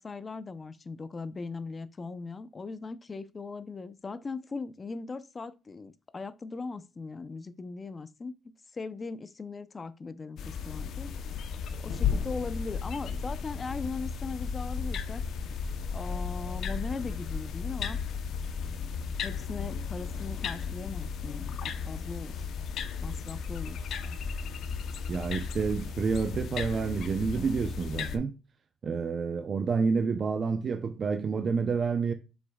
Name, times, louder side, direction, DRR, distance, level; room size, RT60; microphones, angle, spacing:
voice 1, 0.0-8.4 8.7-11.5 11.8-15.2 15.9-18.0 19.2-22.5 23.0-24.2, left 4 dB, 30° left, 0.7 m, -39 dB
sound 1, 10.4-28.2, left 6 dB, 70° left, 0.8 m, -34 dB
voice 2, 25.1-28.3 28.8-32.1, right 5 dB, 45° right, 0.7 m, -29 dB
7.7 x 6.0 x 2.4 m
cardioid pair, 95°, 0 cm